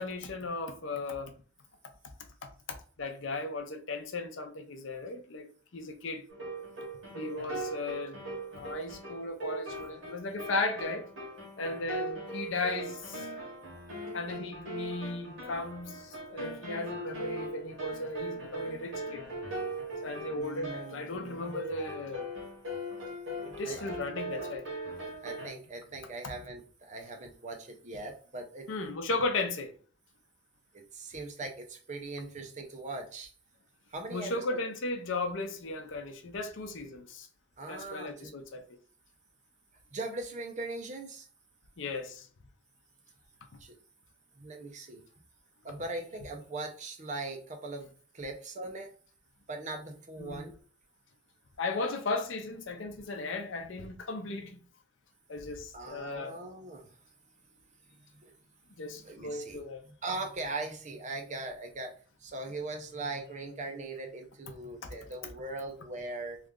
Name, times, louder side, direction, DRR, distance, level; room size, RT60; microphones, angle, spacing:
voice 1, 0.0-1.3 2.4-5.5 5.7-6.2 7.1-8.3 8.5-11.1 11.6-13.3 14.1-19.2 20.0-22.2 23.4-24.7 26.2-26.4 28.7-29.7 34.1-37.3 37.7-38.6 41.8-42.3 50.2-50.4 51.6-54.6 55.3-56.4 58.8-59.8 64.8-64.9, left 3 dB, 65° left, 0.6 m, -36 dB
sound 1, 6.3-25.5, right 1 dB, 75° right, 1.4 m, -40 dB
voice 2, 20.4-21.5 23.6-23.9 25.2-28.7 30.7-33.3 33.9-34.6 37.6-38.3 39.9-41.3 43.6-43.8 44.4-45.0 45.6-48.9 49.5-50.6 55.7-56.9 58.1-58.3 58.9-59.6 59.8-61.9 62.2-66.4, right 2 dB, 35° right, 0.6 m, -40 dB
3.1 x 2.4 x 3.6 m
head